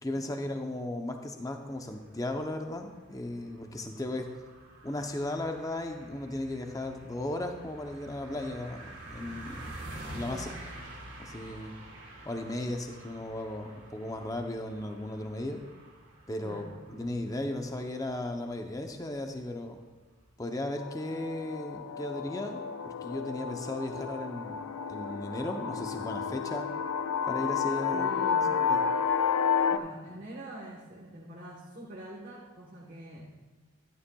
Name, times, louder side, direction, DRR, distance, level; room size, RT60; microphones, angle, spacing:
voice 1, 0.0-4.3 4.8-9.8 10.1-10.5 11.2-11.7 12.3-15.6 16.3-19.8 20.4-24.6 24.9-26.7 27.3-28.1 28.6-28.8, left 1 dB, 15° left, 4 dB, 0.6 m, -36 dB
sound 1, 1.7-20.3, right 1 dB, 55° right, 2.4 m, -48 dB
voice 2, 10.3-10.7 16.4-16.8 27.9-28.6 29.7-33.3, right 1 dB, 40° right, -4 dB, 1.1 m, -44 dB
sound 2, 20.8-29.8, left 6 dB, 85° left, 0.4 m, -31 dB
12.5 x 11.0 x 2.3 m, 1.4 s
head